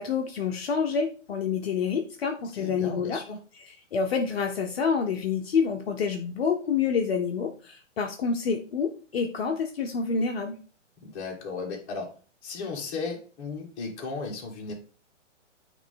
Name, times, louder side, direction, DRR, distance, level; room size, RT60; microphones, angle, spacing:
voice 1, 0.0-3.2 3.9-10.6, left 6 dB, 55° left, 3 dB, 0.8 m, -27 dB
voice 2, 2.5-3.4 11.0-12.1 12.4-14.7, left 4 dB, 20° left, -2 dB, 1.4 m, -35 dB
8.4 x 3.3 x 3.7 m, 0.38 s
hypercardioid pair, 165°, 37 cm